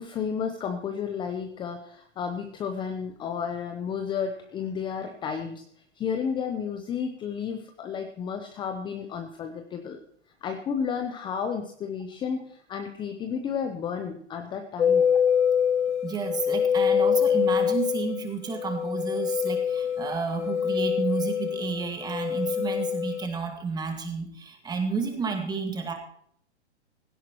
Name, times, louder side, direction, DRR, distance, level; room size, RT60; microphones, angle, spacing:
voice 1, 0.0-5.6 6.0-10.0 10.4-15.1, left 7 dB, 15° left, 6 dB, 0.8 m, -32 dB
sound 1, 14.8-23.3, left 8 dB, 75° left, 0.9 m, -25 dB
voice 2, 16.0-25.9, right 5 dB, 10° right, 5 dB, 1.9 m, -31 dB
16.5 x 15.5 x 3.1 m, 0.65 s
hypercardioid pair, 135°, 35 cm